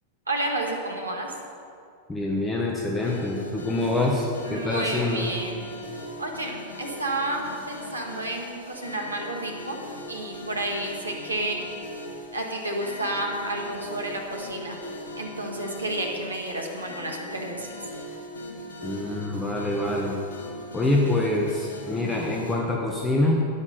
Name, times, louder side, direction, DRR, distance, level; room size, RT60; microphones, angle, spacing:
voice 1, 0.3-1.4 4.4-5.6 6.2-9.8 10.1-11.6 12.3-14.8 15.2-17.7, right 1 dB, 80° right, 0 dB, 1.8 m, -31 dB
voice 2, 2.1-5.3 18.8-20.2 20.7-23.5, left 2 dB, 10° left, -2 dB, 1.3 m, -25 dB
sound 1, 3.0-22.6, left 1 dB, 65° left, 1.8 m, -40 dB
12.5 x 9.9 x 5.3 m, 2.4 s
figure-of-eight pair, 90°, 0 cm